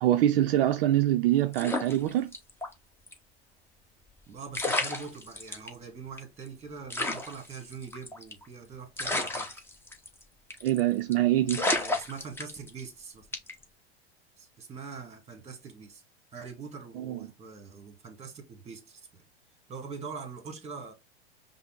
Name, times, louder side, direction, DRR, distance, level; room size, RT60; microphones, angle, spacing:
voice 1, 0.0-2.3 10.6-11.6 17.0-17.2, right 13 dB, 60° right, 0.5 m, -24 dB
sound 1, 1.5-2.7 3.1-3.2 4.2-4.3 4.5-5.7 6.2-6.3 6.5-6.6 6.9-8.5 9.0-10.2 10.5-10.8 11.1-11.2 11.5-12.9 13.3-13.6, left 2 dB, 5° left, 0.8 m, -31 dB
voice 2, 4.3-9.5 11.7-13.3 14.4-16.0 16.3-19.2 19.7-20.9, right 5 dB, 20° right, 1.4 m, -43 dB
5.6 x 2.0 x 3.7 m
hypercardioid pair, 100°, 32 cm